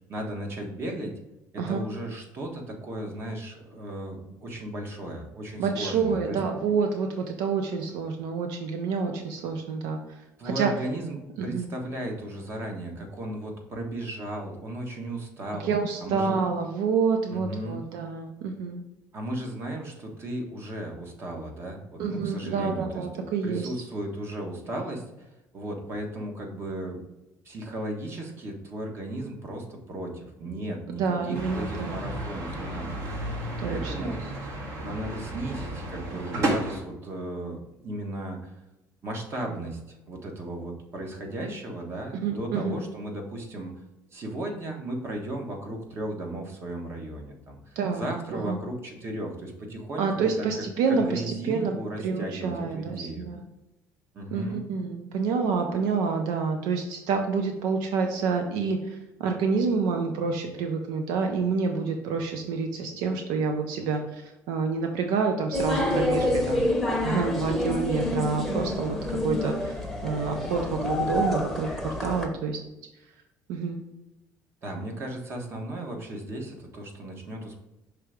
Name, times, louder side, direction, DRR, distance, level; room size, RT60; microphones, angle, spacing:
voice 1, 0.1-1.1 1.5-6.4 10.4-11.2 11.4-15.7 16.0-16.4 17.3-17.8 19.1-27.0 27.4-33.3 33.6-34.3 34.8-38.5 39.0-43.7 44.1-50.4 51.1-53.3 54.1-54.6 74.6-77.6, right 1 dB, 40° right, 2 dB, 1.3 m, -35 dB
voice 2, 5.6-10.0 10.4-10.7 11.4-11.7 15.6-18.8 22.0-23.7 31.0-32.0 33.6-34.1 42.2-42.8 47.8-48.0 48.3-48.6 50.0-53.4 54.3-66.7 67.0-72.6 73.5-73.8, right 5 dB, 90° right, 4 dB, 0.6 m, -28 dB
sound 1, 31.3-36.8, right 1 dB, 55° right, 1.8 m, -32 dB
sound 2, 65.5-72.3, left 1 dB, ahead, 0.9 m, -28 dB
5.7 x 3.4 x 5.0 m, 0.96 s
cardioid pair, 130°, 6 cm